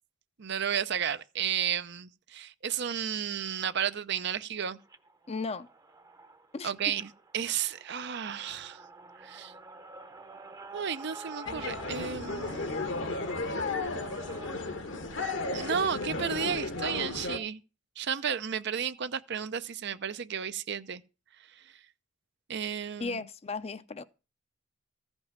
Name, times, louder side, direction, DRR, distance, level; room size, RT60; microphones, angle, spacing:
voice 1, 0.4-4.8 6.6-8.8 9.2-9.5 10.7-13.1 15.5-17.6 18.0-21.0 22.5-23.2, right 8 dB, 60° right, 0.6 m, -33 dB
sound 1, 4.8-16.2, right 3 dB, 20° right, 0.8 m, -49 dB
voice 2, 5.3-5.7 6.5-6.7 23.0-24.0, left 4 dB, 30° left, 0.6 m, -35 dB
sound 2, 11.5-17.4, left 3 dB, 70° left, 1.3 m, -34 dB
14.5 x 5.4 x 7.3 m
head